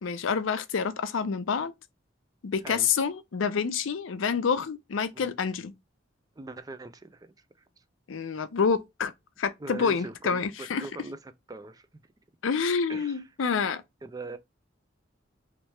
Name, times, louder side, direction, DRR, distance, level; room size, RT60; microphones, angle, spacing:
voice 1, 0.0-1.7 2.4-5.7 8.1-9.1 9.4-10.9 12.4-13.8, left 6 dB, 90° left, 0.5 m, -28 dB
voice 2, 6.4-7.3 9.6-12.0 12.9-13.2 14.0-14.4, right 2 dB, 20° right, 0.4 m, -41 dB
3.2 x 3.0 x 3.1 m
head